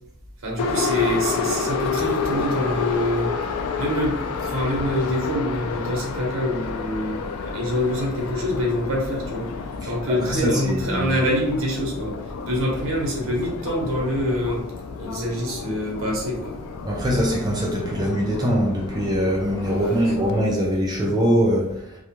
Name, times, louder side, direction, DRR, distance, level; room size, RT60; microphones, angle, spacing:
voice 1, 0.4-3.4 3.8-9.5 9.8-14.6 15.0-16.6 19.7-20.1, equal, 65° right, -2 dB, 0.8 m, -25 dB
Subway metro underground, 0.6-20.4, left 5 dB, 85° left, 0.3 m, -30 dB
voice 2, 10.1-11.2 16.8-21.8, equal, 20° right, -3 dB, 0.4 m, -22 dB
2.3 x 2.2 x 2.9 m, 0.79 s
head